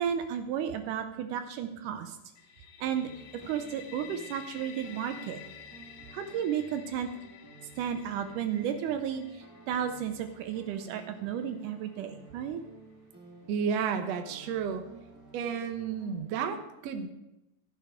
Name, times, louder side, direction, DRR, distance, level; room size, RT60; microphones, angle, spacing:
voice 1, 0.0-2.2 2.8-3.1 3.5-5.4 6.1-7.1 7.8-12.6, right 9 dB, 85° right, 8 dB, 2.1 m, -33 dB
sound 1, 2.4-12.1, left 9 dB, 70° left, 2.3 m, -51 dB
sound 2, 2.8-16.1, right 3 dB, 20° right, 0.5 m, -53 dB
voice 2, 13.5-14.8 15.3-17.1, right 6 dB, 65° right, 6 dB, 1.8 m, -32 dB
14.5 x 7.3 x 5.1 m, 0.90 s
omnidirectional pair, 3.8 m